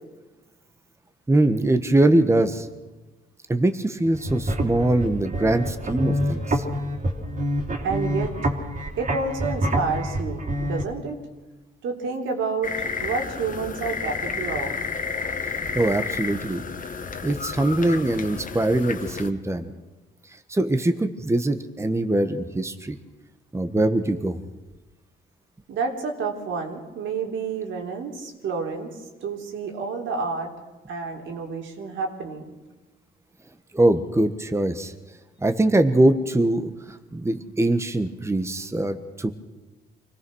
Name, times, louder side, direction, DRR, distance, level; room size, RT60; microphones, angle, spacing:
voice 1, 1.3-2.7 3.5-6.6 15.7-16.6 17.2-19.7 20.5-23.0 23.5-24.4 33.7-34.9 35.4-39.3, right 1 dB, 15° right, 8 dB, 1.4 m, -22 dB
sound 1, 4.1-10.8, equal, 40° right, 3.3 m, -27 dB
voice 2, 7.8-8.4 9.0-11.2 11.8-14.7 25.7-30.5 30.9-32.5, right 4 dB, 75° right, 3 dB, 3.7 m, -29 dB
sound 2, 12.6-19.3, left 5 dB, 40° left, 1.8 m, -31 dB
24.5 x 18.0 x 6.4 m, 1.2 s
cardioid pair, 90°, 20 cm